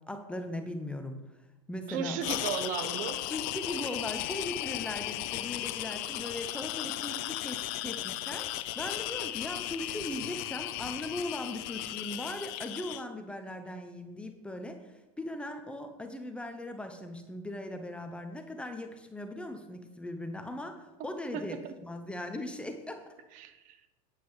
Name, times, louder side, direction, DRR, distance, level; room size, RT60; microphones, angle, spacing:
voice 1, 0.1-1.2 1.7-2.2 3.3-8.5 8.7-23.0, left 1 dB, 5° left, 6 dB, 0.9 m, -39 dB
voice 2, 1.9-3.2 21.3-21.7 23.3-23.8, right 7 dB, 55° right, 9 dB, 1.1 m, -35 dB
sound 1, 2.2-13.0, left 16 dB, 60° left, 0.5 m, -36 dB
9.2 x 6.0 x 5.6 m, 1.0 s
supercardioid pair, 140°, 16 cm